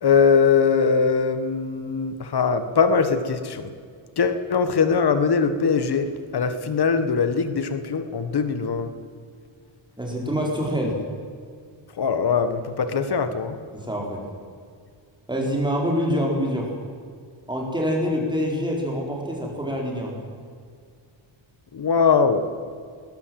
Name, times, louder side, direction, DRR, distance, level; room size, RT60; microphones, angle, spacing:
voice 1, 0.0-3.7 4.2-8.9 12.0-13.6 21.7-22.5, left 5 dB, 55° left, 10 dB, 1.7 m, -21 dB
voice 2, 10.0-11.0 13.1-13.3 13.7-14.2 15.3-16.7 17.5-20.1, equal, 10° right, -1 dB, 4.4 m, -26 dB
21.0 x 20.0 x 7.8 m, 2.1 s
wide cardioid pair, 145°, 47 cm